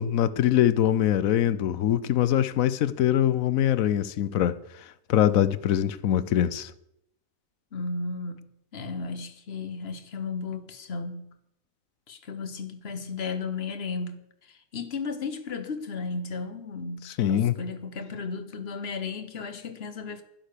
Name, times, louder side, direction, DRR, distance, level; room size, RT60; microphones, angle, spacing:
voice 1, 0.0-4.6 5.1-6.7 17.0-17.5, left 11 dB, 90° left, 1.1 m, -23 dB
voice 2, 7.7-8.5 8.7-11.3 12.1-20.2, left 4 dB, 50° left, 1.4 m, -34 dB
11.5 x 10.5 x 6.7 m
omnidirectional pair, 1.4 m